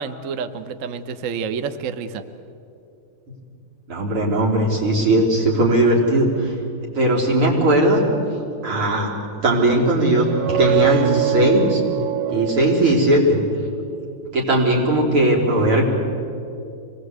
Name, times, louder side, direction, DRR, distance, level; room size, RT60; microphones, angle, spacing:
voice 1, 0.0-2.2, right 6 dB, 50° right, 10 dB, 1.0 m, -29 dB
voice 2, 3.9-6.5 6.9-8.0 8.6-9.1 9.4-11.8 12.3-13.4 14.3-15.9, right 1 dB, 90° right, -3 dB, 4.7 m, -18 dB
sound 1, 10.2-13.7, right 12 dB, 70° right, 1.4 m, -24 dB
25.5 x 19.5 x 8.1 m, 2.7 s
omnidirectional pair, 2.4 m